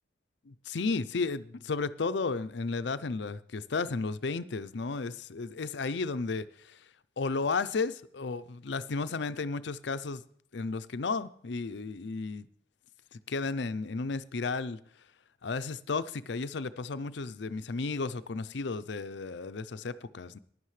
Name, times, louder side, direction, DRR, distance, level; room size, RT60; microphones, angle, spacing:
voice 1, 0.5-6.8 7.2-10.2 10.5-12.5 13.1-14.8 15.4-20.4, left 4 dB, 70° left, 14 dB, 0.6 m, -33 dB
15.0 x 11.0 x 3.2 m, 0.63 s
head